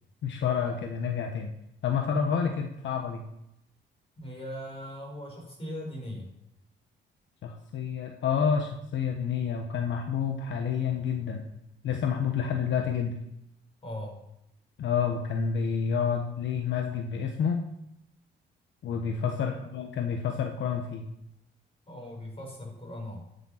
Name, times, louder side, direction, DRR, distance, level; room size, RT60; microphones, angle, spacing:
voice 1, 0.2-1.5 1.8-3.2 7.4-11.5 11.8-13.2 14.8-17.6 18.8-21.1, left 7 dB, 70° left, 4 dB, 1.2 m, -29 dB
voice 2, 4.2-6.3 13.8-14.2 19.5-19.7 21.9-23.2, left 1 dB, 30° left, 0 dB, 5.0 m, -39 dB
12.0 x 7.0 x 5.7 m, 0.83 s
cardioid pair, 90°, 20 cm